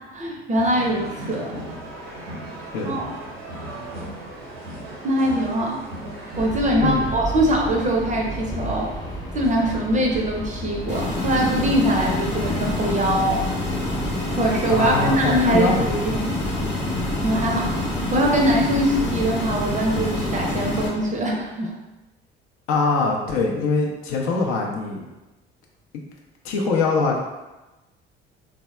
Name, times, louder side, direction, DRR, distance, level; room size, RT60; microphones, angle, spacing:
voice 1, 0.1-1.6 2.8-3.1 5.0-5.8 6.4-8.9 9.3-13.4 14.4-15.7 16.0-16.4 17.2-21.8, right 1 dB, 25° right, 0 dB, 0.5 m, -22 dB
sound 1, 0.6-6.5, right 1 dB, 75° right, 0.6 m, -36 dB
Subway metro underground, 6.3-21.7, equal, 15° left, 0.7 m, -34 dB
sound 2, 10.9-20.9, left 1 dB, 35° left, 0.9 m, -27 dB
voice 2, 14.7-16.1 22.7-25.0 26.4-27.2, left 4 dB, 60° left, -1 dB, 0.5 m, -23 dB
3.3 x 2.0 x 2.2 m, 1.1 s
figure-of-eight pair, 50°, 30 cm